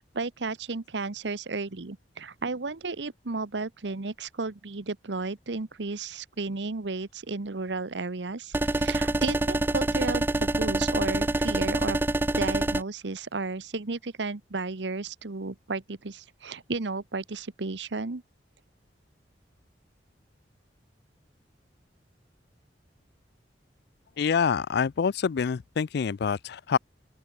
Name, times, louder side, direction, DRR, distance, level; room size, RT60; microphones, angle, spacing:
voice 1, 0.0-12.0 12.4-18.2, right 3 dB, 75° right, 1.0 m, -33 dB
sound 1, 8.5-12.8, right 2 dB, 10° right, 0.4 m, -26 dB
voice 2, 24.2-26.8, left 6 dB, 65° left, 0.4 m, -26 dB
open air
head